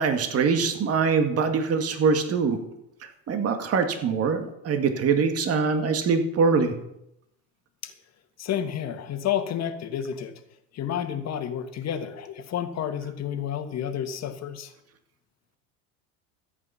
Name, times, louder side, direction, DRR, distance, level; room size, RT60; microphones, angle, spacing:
voice 1, 0.0-2.6 3.3-6.7, right 5 dB, 40° right, 7 dB, 1.9 m, -23 dB
voice 2, 8.4-10.3 10.7-14.7, left 9 dB, 45° left, 7 dB, 1.8 m, -30 dB
14.0 x 8.4 x 5.7 m, 0.80 s
supercardioid pair, 100°, 36 cm